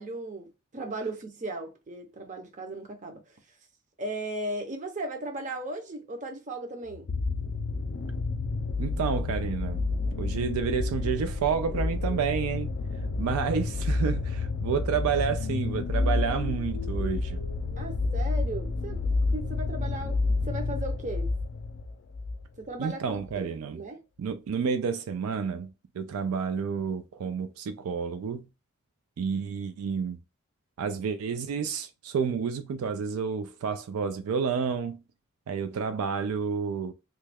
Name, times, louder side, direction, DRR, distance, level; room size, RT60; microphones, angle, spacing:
voice 1, 0.0-3.4 4.0-7.1 17.8-20.2 20.4-21.3 22.6-24.0, right 2 dB, 35° right, 0.7 m, -37 dB
sound 1, 6.9-22.5 23.3-23.4, left 3 dB, 55° left, 0.4 m, -30 dB
voice 2, 8.8-9.8 10.2-12.7 13.2-17.4 22.8-23.8 24.2-28.5 29.2-30.2 30.8-35.0 35.5-36.9, right 6 dB, 80° right, 0.3 m, -30 dB
3.1 x 2.2 x 3.4 m
head